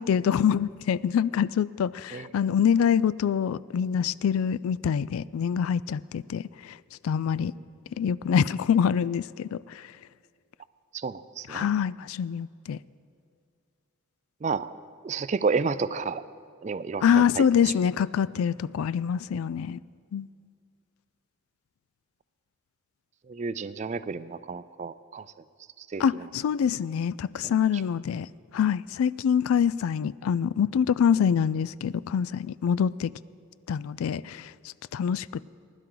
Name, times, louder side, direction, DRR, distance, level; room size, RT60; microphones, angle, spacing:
voice 1, 0.0-6.4 7.0-7.5 8.0-9.6 11.5-12.8 17.0-19.8 20.1-20.3 26.0-28.3 28.5-33.1 33.7-34.5 34.9-35.3, left 7 dB, 90° left, 19 dB, 0.3 m, -25 dB
voice 2, 10.9-11.7 14.4-14.7 15.0-16.2 16.6-17.7 23.3-25.3 25.8-26.0, right 4 dB, 35° right, 15 dB, 0.3 m, -31 dB
20.5 x 11.5 x 3.9 m, 2.2 s
head